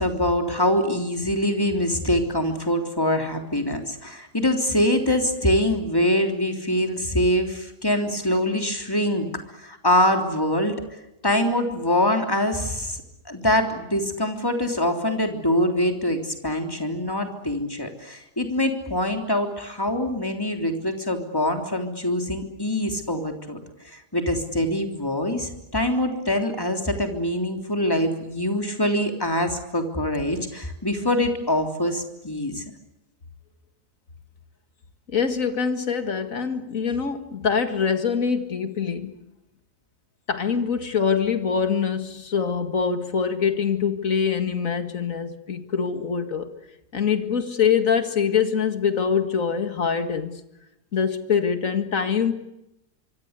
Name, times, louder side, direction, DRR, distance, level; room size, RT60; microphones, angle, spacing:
voice 1, 0.0-10.8 11.2-13.0 13.3-23.6 23.8-32.6, left 1 dB, 15° left, 4 dB, 3.4 m, -24 dB
voice 2, 35.1-39.2 40.3-46.5 46.9-50.4 50.9-52.3, left 6 dB, 55° left, 9 dB, 2.3 m, -24 dB
25.5 x 24.0 x 8.2 m, 0.89 s
omnidirectional pair, 1.7 m